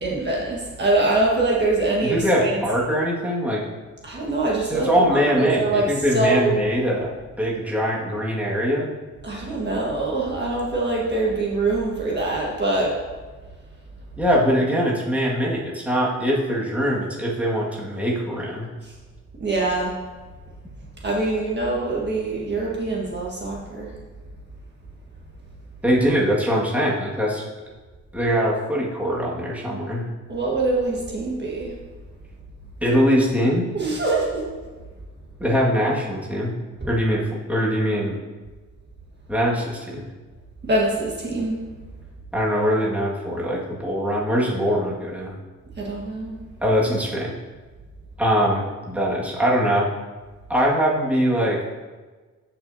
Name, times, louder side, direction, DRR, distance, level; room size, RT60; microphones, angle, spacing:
voice 1, 0.0-2.6 4.0-6.5 9.2-13.0 19.4-19.9 21.0-23.9 30.3-31.7 33.7-34.5 40.7-41.6 45.8-46.3, right 2 dB, 35° right, -3 dB, 1.6 m, -24 dB
voice 2, 2.0-3.6 4.7-7.1 7.4-8.9 14.2-18.7 25.8-27.4 28.1-30.1 32.8-33.7 35.4-36.5 36.9-38.2 39.3-40.1 42.3-45.4 46.6-47.3 48.2-49.9 50.5-51.6, equal, 5° right, -5 dB, 1.9 m, -22 dB
14.0 x 5.8 x 2.8 m, 1.3 s
cardioid pair, 90°, 30 cm